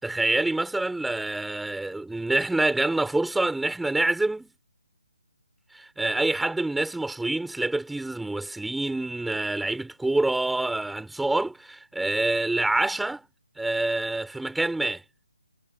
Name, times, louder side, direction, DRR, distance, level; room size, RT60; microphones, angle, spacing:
voice 1, 0.0-4.5 5.7-13.2 13.6-15.0, right 2 dB, ahead, 6.2 m, -26 dB
hypercardioid pair, 165°, 3 cm